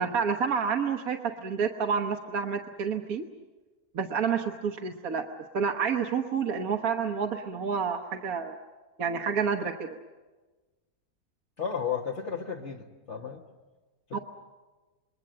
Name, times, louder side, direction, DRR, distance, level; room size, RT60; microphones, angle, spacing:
voice 1, 0.0-3.2 3.9-5.3 5.5-8.5 9.0-9.9 14.1-14.2, right 6 dB, 70° right, 3 dB, 1.5 m, -29 dB
voice 2, 11.6-13.4 14.1-14.2, left 7 dB, 50° left, 0 dB, 1.6 m, -33 dB
28.0 x 21.5 x 7.6 m, 1.2 s
omnidirectional pair, 1.6 m